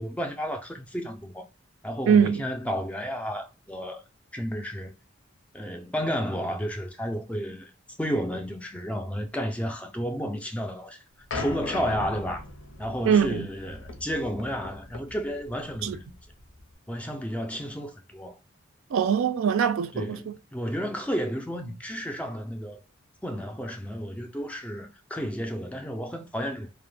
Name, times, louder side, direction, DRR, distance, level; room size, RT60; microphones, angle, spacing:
voice 1, 0.0-1.4 1.8-4.0 4.3-4.9 5.5-7.7 8.0-11.0 11.3-12.4 12.8-16.2 16.9-18.4 19.9-22.8 23.2-26.7, equal, 5° left, 0.3 m, -32 dB
voice 2, 2.1-2.4 13.1-13.5 15.8-16.0 18.9-20.3, right 7 dB, 80° right, 0.3 m, -22 dB
sound 1, 11.3-16.7, left 2 dB, 80° left, 0.6 m, -39 dB
2.1 x 2.1 x 3.2 m
head